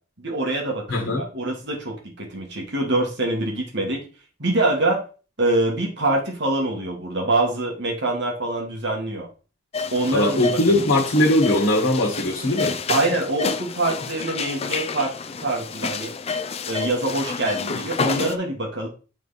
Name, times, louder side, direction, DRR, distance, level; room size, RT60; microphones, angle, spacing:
voice 1, 0.2-4.0 4.4-5.0 5.4-9.3 9.9-10.4 10.7-10.9 12.9-15.1 15.4-16.1 16.7-18.9, right 2 dB, 60° right, 1 dB, 1.7 m, -24 dB
voice 2, 0.9-1.2 10.1-12.8, left 1 dB, 80° left, -3 dB, 1.4 m, -20 dB
sound 1, 9.7-18.4, left 5 dB, 30° left, 0.4 m, -29 dB
8.3 x 3.4 x 4.0 m, 0.36 s
head